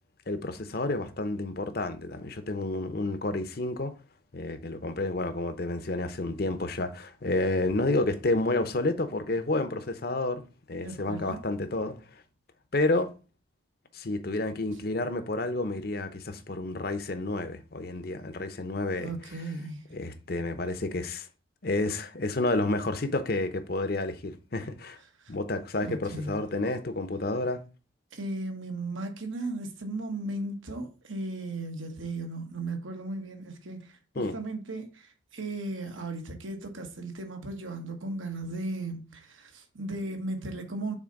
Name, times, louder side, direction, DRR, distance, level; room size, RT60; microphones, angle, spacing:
voice 1, 0.3-3.9 4.3-10.4 10.7-12.0 12.7-13.1 13.9-19.1 19.9-21.3 21.6-25.0 25.3-27.6 34.2-34.3, left 2 dB, 50° left, 0.7 m, -30 dB
voice 2, 10.8-11.4 19.0-19.9 25.2-25.4 25.8-26.4 28.1-40.9, right 2 dB, 80° right, 1.4 m, -36 dB
6.1 x 4.0 x 5.2 m
head